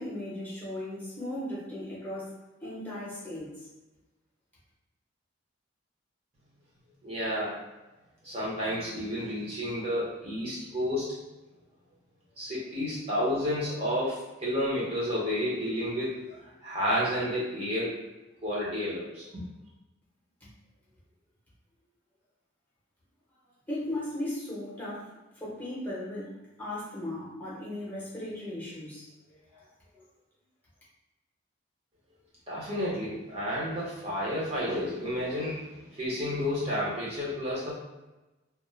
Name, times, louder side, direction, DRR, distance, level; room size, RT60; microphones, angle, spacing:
voice 1, 0.0-2.3 2.6-3.6 20.4-20.5 23.7-25.1 25.4-26.3 26.6-29.1 29.5-29.6, left 1 dB, 10° left, -9 dB, 0.7 m, -36 dB
voice 2, 7.0-7.5 8.2-11.1 12.4-16.2 16.6-17.9 18.4-19.4 32.5-37.7, equal, 30° right, -7 dB, 0.6 m, -31 dB
2.2 x 2.0 x 3.0 m, 1.1 s
head